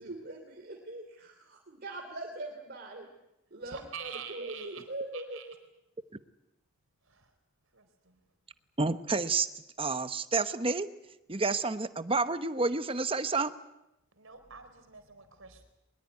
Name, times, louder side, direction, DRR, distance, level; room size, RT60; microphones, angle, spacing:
voice 1, 0.0-3.1 3.5-5.6, right 2 dB, 45° right, 2 dB, 3.1 m, -41 dB
voice 2, 3.6-4.8 5.1-5.5 7.0-7.3 7.7-8.2 14.1-15.7, right 7 dB, 65° right, 7 dB, 4.3 m, -46 dB
voice 3, 8.8-9.5 9.8-10.9 11.3-13.5, right 3 dB, 25° right, 12 dB, 1.0 m, -29 dB
23.0 x 21.5 x 9.7 m, 0.90 s
head